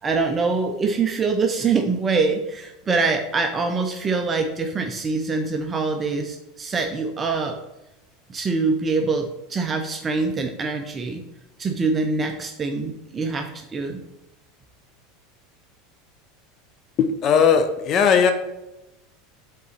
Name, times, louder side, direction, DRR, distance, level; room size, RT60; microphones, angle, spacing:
voice 1, 0.0-7.6 8.3-11.2 11.6-14.0, right 4 dB, 25° right, 4 dB, 0.6 m, -24 dB
voice 2, 17.0-18.3, left 7 dB, 40° left, 7 dB, 0.6 m, -18 dB
5.3 x 4.0 x 5.0 m, 0.95 s
supercardioid pair, 120°, 0 cm